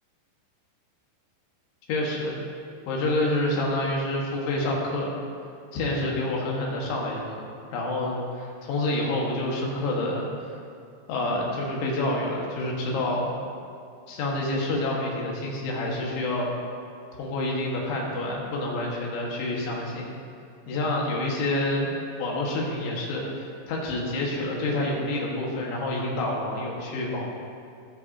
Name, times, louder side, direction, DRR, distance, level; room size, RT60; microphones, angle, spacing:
voice 1, 1.9-2.4 2.9-5.2 5.7-7.2 7.7-10.3 11.1-13.3 14.1-16.5 17.2-20.1 20.7-21.9 22.2-27.3, left 1 dB, 80° left, -3 dB, 3.9 m, -28 dB
18.5 x 7.8 x 2.8 m, 2.4 s
omnidirectional pair, 5.4 m